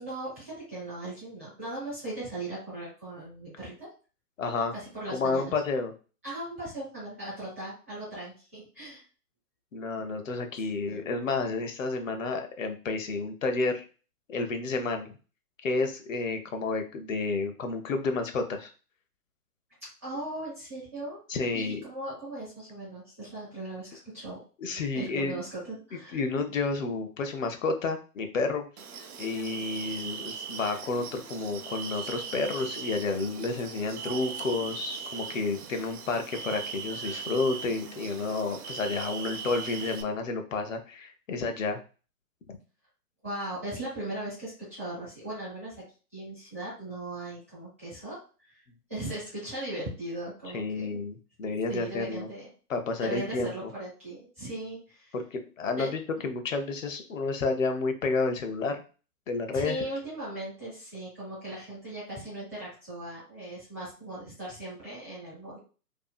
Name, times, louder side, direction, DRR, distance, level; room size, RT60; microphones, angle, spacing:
voice 1, 0.0-3.9 4.7-5.5 6.2-9.0 10.6-11.0 20.0-21.2 21.5-24.4 24.9-26.2 43.2-45.8 46.1-48.6 48.9-51.0 51.7-52.5 53.0-55.2 55.8-55.9 59.5-65.6, right 1 dB, 10° right, -10 dB, 0.5 m, -38 dB
voice 2, 4.4-4.7 5.1-5.9 9.7-13.8 14.3-15.1 15.6-18.7 21.3-21.8 24.6-25.4 26.1-28.7 29.2-41.8 50.5-52.3 52.7-53.7 55.1-58.8 59.3-59.8, left 3 dB, 55° left, 6 dB, 0.6 m, -30 dB
sound 1, 28.8-40.0, right 6 dB, 70° right, 0.6 m, -39 dB
2.6 x 2.3 x 2.4 m, 0.36 s
hypercardioid pair, 145°, 47 cm